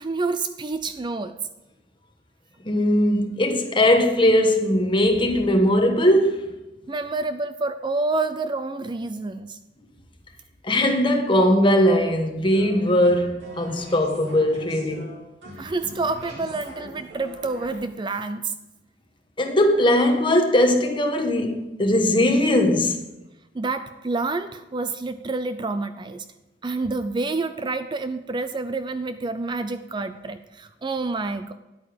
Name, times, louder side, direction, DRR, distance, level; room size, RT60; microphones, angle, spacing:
voice 1, 0.0-1.3 6.9-9.6 15.6-18.5 23.5-26.2 26.6-31.5, right 3 dB, 25° right, 0.4 m, -28 dB
voice 2, 2.6-6.5 10.6-15.1 19.4-23.0, left 1 dB, 30° left, 1.3 m, -20 dB
sound 1, 12.5-17.8, right 1 dB, 85° right, 3.2 m, -42 dB
11.0 x 8.6 x 5.1 m
head